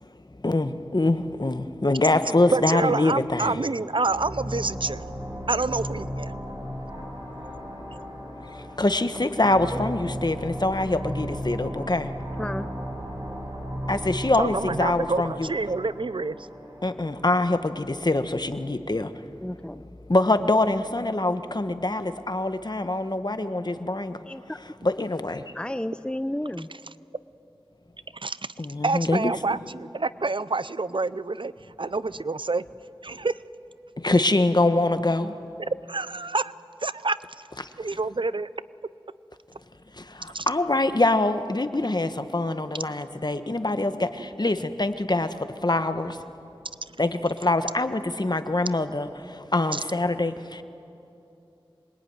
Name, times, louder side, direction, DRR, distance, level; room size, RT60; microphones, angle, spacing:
voice 1, 0.4-3.6 8.8-12.1 13.9-15.5 16.8-19.1 20.1-24.2 24.8-25.4 28.6-29.3 34.0-35.3 40.2-45.3 45.6-46.2 47.0-49.1 49.5-50.6, left 2 dB, 45° left, 9 dB, 1.3 m, -24 dB
voice 2, 2.5-5.0 5.5-6.3 14.4-16.4 28.1-28.5 28.8-31.5 31.8-32.6 33.0-33.4 35.6-36.5 36.8-37.2 37.8-38.5 40.3-40.5 49.7-49.8, right 3 dB, 60° right, 16 dB, 0.6 m, -27 dB
sound 1, 4.0-17.4, equal, 40° right, 6.8 m, -35 dB
voice 3, 12.4-12.7 19.4-19.9 24.3-24.6 25.5-26.7, left 1 dB, 10° left, 12 dB, 0.6 m, -32 dB
26.0 x 22.0 x 9.6 m, 2.8 s
wide cardioid pair, 45°, 10 cm